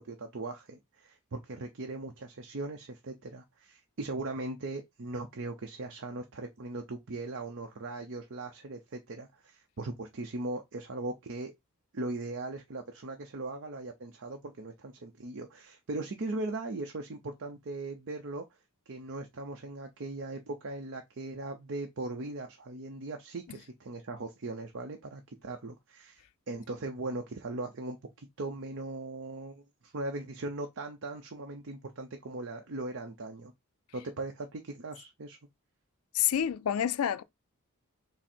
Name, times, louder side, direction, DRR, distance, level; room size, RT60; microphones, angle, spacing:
voice 1, 0.0-11.5 11.9-18.5 18.9-33.5 33.9-35.4, right 2 dB, 55° right, 0.6 m, -39 dB
voice 2, 36.1-37.2, left 10 dB, 75° left, 0.4 m, -28 dB
6.0 x 2.0 x 4.3 m
head